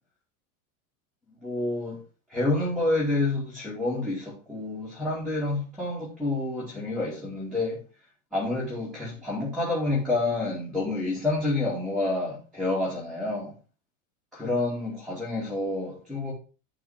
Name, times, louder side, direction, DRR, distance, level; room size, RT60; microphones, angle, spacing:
voice 1, 1.4-2.0 2.3-7.8 8.3-13.5 14.3-16.3, left 2 dB, ahead, 2.4 m, -28 dB
11.0 x 4.0 x 5.8 m
supercardioid pair, 165°, 44 cm